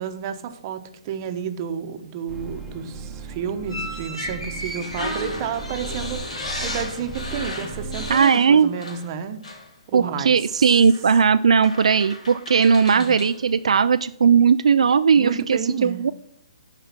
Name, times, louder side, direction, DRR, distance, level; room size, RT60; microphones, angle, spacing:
voice 1, 0.0-9.4 9.9-10.6 12.9-13.2 15.2-16.0, right 7 dB, 35° right, 8 dB, 1.0 m, -31 dB
sound 1, 2.3-8.2, right 3 dB, 5° right, 1.2 m, -36 dB
sound 2, 3.7-9.2 9.4-9.7 10.9-11.0 11.6-13.4, left 1 dB, 80° left, 3.1 m, -34 dB
voice 2, 8.1-8.7 9.9-16.1, right 6 dB, 80° right, 11 dB, 0.3 m, -18 dB
11.5 x 4.8 x 5.9 m, 0.76 s
hypercardioid pair, 150°, 3 cm